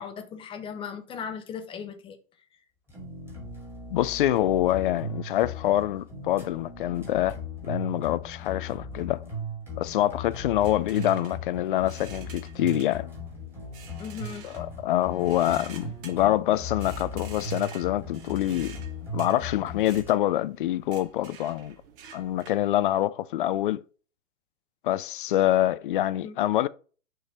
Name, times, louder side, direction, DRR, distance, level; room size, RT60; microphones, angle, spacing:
voice 1, 0.0-2.2 14.0-14.5 26.2-26.4, left 7 dB, 15° left, 0.7 m, -37 dB
sound 1, 2.9-20.1, left 1 dB, 5° right, 2.1 m, -38 dB
voice 2, 3.9-7.4 7.6-9.2 9.8-13.1 14.4-18.8 19.1-21.8 22.1-23.8 24.8-26.7, left 13 dB, 40° left, 0.4 m, -25 dB
sound 2, 10.6-22.9, right 7 dB, 40° right, 1.5 m, -49 dB
6.7 x 3.2 x 5.7 m
hypercardioid pair, 125°, 42 cm